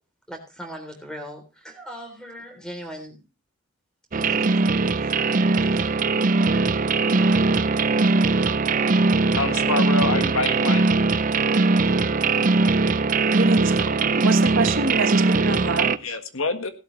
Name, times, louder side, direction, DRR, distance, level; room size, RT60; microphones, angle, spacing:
voice 1, 0.3-3.3 4.1-5.9, equal, 5° left, 5 dB, 3.5 m, -40 dB
sound 1, 4.1-16.0, right 3 dB, 40° right, 0.5 m, -20 dB
voice 2, 9.4-10.9 16.0-16.7, left 3 dB, 75° left, 8 dB, 1.7 m, -26 dB
voice 3, 13.2-16.2, right 3 dB, 60° right, 8 dB, 1.4 m, -27 dB
16.5 x 12.0 x 3.2 m, 0.30 s
head